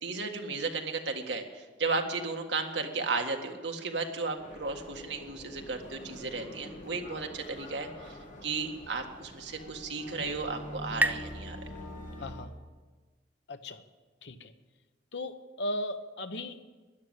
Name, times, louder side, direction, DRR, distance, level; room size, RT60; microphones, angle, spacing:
voice 1, 0.0-11.6, right 4 dB, 75° right, 3 dB, 1.7 m, -34 dB
sound 1, 4.4-12.4, left 1 dB, 45° left, 2.2 m, -45 dB
sound 2, 9.6-12.9, right 1 dB, 10° right, 0.4 m, -36 dB
voice 2, 12.2-12.5 13.5-13.8 14.2-14.5 15.1-16.6, left 1 dB, 70° left, 9 dB, 1.0 m, -37 dB
13.0 x 11.0 x 8.9 m, 1.3 s
head